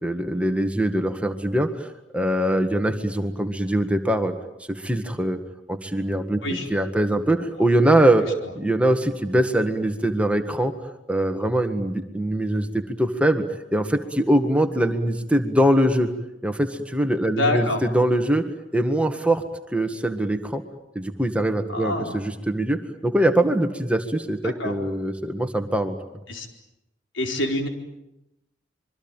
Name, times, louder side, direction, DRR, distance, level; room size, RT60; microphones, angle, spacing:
voice 1, 0.0-4.3 4.7-5.4 5.7-8.3 8.5-10.7 11.1-13.4 13.7-16.1 16.4-18.4 18.7-19.4 19.7-20.6 20.9-26.0, right 1 dB, 5° right, 7 dB, 1.7 m, -22 dB
voice 2, 17.4-17.8 21.7-22.2 24.6-24.7 26.3-26.5 27.1-27.7, left 1 dB, 85° left, 3 dB, 4.5 m, -26 dB
26.0 x 23.5 x 9.0 m, 0.89 s
head